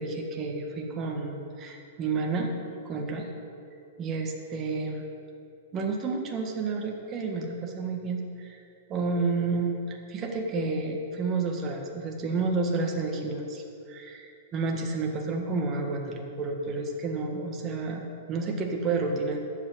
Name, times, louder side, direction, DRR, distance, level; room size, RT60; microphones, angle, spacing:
voice 1, 0.0-2.5 2.8-3.3 4.0-5.0 5.7-8.6 8.9-14.3 14.5-18.0 18.3-19.4, right 3 dB, 20° right, 1 dB, 1.5 m, -30 dB
14.0 x 5.8 x 9.4 m, 2.6 s
supercardioid pair, 165°, 0 cm